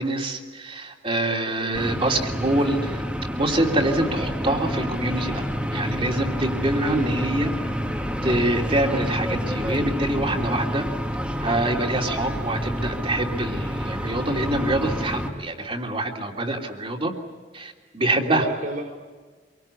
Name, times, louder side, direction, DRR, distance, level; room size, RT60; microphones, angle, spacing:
voice 1, 0.0-3.0 3.3-5.4 5.7-7.5 8.2-10.8 11.4-17.1 17.5-18.5, right 1 dB, 30° right, 2 dB, 3.2 m, -25 dB
voice 2, 1.4-1.8 6.7-7.1 18.2-18.9, right 1 dB, 55° right, 1 dB, 4.5 m, -33 dB
sound 1, 1.7-15.3, equal, 5° right, 2.4 m, -28 dB
26.5 x 24.5 x 8.5 m, 1.4 s
head